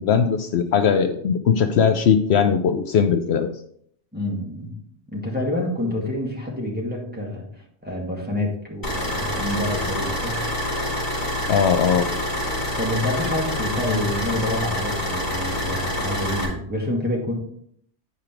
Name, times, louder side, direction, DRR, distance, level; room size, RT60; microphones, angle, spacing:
voice 1, 0.0-3.5 11.5-12.1 13.9-14.0, left 7 dB, 70° left, 8 dB, 0.8 m, -19 dB
voice 2, 4.1-4.8 5.1-7.4 7.8-10.4 12.8-17.3, left 1 dB, 10° right, -3 dB, 2.0 m, -27 dB
sound 1, 8.8-16.4, left 1 dB, 15° left, 2.6 m, -26 dB
9.8 x 5.0 x 4.5 m, 0.66 s
omnidirectional pair, 1.2 m